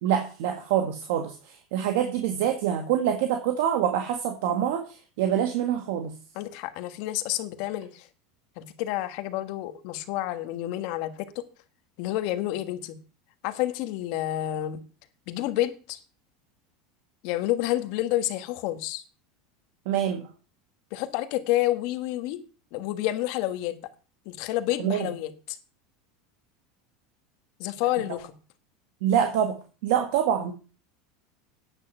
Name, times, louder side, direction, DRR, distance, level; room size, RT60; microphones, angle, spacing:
voice 1, 0.0-4.8 5.2-6.1 19.8-20.2 24.8-25.1 29.0-29.5 29.8-30.5, right 9 dB, 70° right, 1.7 m, -25 dB
voice 2, 6.3-8.1 8.6-11.4 12.0-13.0 13.4-14.8 15.3-16.0 17.2-19.0 20.9-22.4 22.7-23.8 24.2-25.6 27.6-28.3, left 14 dB, 60° left, 1.4 m, -29 dB
9.7 x 9.1 x 5.6 m
supercardioid pair, 140°, 0 cm